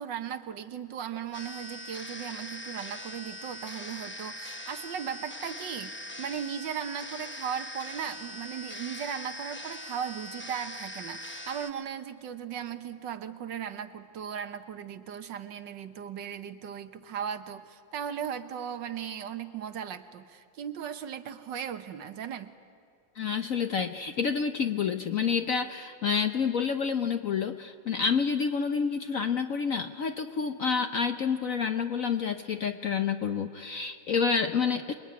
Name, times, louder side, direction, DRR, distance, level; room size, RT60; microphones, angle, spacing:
voice 1, 0.0-22.5, right 8 dB, 65° right, 10 dB, 1.6 m, -37 dB
sound 1, 1.3-11.7, left 1 dB, 15° left, 0.3 m, -41 dB
voice 2, 23.2-34.9, left 6 dB, 55° left, 7 dB, 0.9 m, -28 dB
28.0 x 21.5 x 9.5 m, 2.4 s
omnidirectional pair, 2.2 m